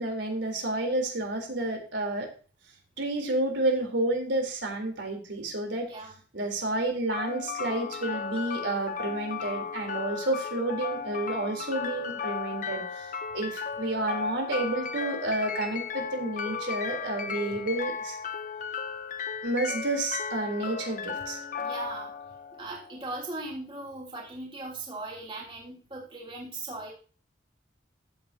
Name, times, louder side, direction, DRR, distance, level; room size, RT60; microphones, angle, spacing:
voice 1, 0.0-2.3 3.0-5.9 6.3-18.2 19.4-21.4, right 2 dB, 75° right, 2 dB, 3.7 m, -30 dB
sound 1, 7.1-23.1, left 6 dB, 45° left, 0.8 m, -35 dB
voice 2, 21.6-22.1 22.5-26.9, right 2 dB, 25° right, -3 dB, 3.1 m, -39 dB
14.5 x 8.1 x 2.8 m, 0.37 s
head